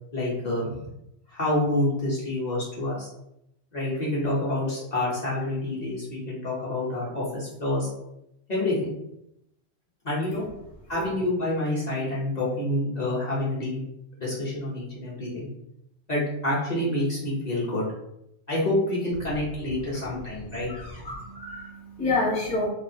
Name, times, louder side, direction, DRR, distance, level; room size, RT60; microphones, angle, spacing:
voice 1, 0.1-0.8 1.3-3.1 3.7-7.9 8.5-8.9 10.0-10.4 10.9-13.8 14.2-15.5 16.1-17.8 18.5-21.0, left 1 dB, 45° left, -7 dB, 0.7 m, -27 dB
voice 2, 21.0-22.7, left 3 dB, 10° left, -5 dB, 0.4 m, -28 dB
2.4 x 2.3 x 2.6 m, 0.81 s
omnidirectional pair, 1.3 m